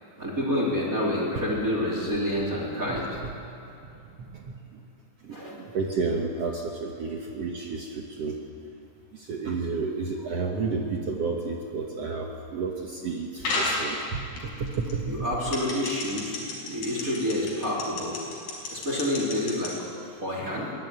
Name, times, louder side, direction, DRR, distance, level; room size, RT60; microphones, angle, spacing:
voice 1, 0.2-3.2 5.3-5.6 13.5-13.6 15.1-18.2 18.7-19.9 20.2-20.7, left 1 dB, 20° right, -3 dB, 3.1 m, -28 dB
voice 2, 4.2-4.5 5.2-8.4 9.1-15.1, right 4 dB, 90° right, 1 dB, 1.3 m, -31 dB
sound 1, 13.4-13.8 14.4-14.9 15.5-19.7, left 3 dB, 60° left, 7.0 m, -30 dB
22.5 x 16.5 x 9.3 m, 2.8 s
omnidirectional pair, 5.0 m